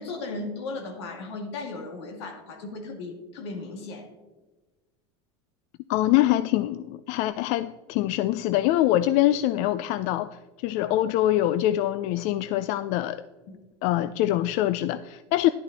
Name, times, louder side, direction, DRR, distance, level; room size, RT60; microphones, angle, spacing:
voice 1, 0.0-4.1 10.8-11.0 13.5-13.6, left 3 dB, 85° left, 4 dB, 2.0 m, -36 dB
voice 2, 5.9-10.4 10.6-13.2 13.8-15.5, left 14 dB, 60° left, 13 dB, 0.4 m, -24 dB
11.0 x 8.2 x 4.0 m, 1.2 s
supercardioid pair, 110°, 14 cm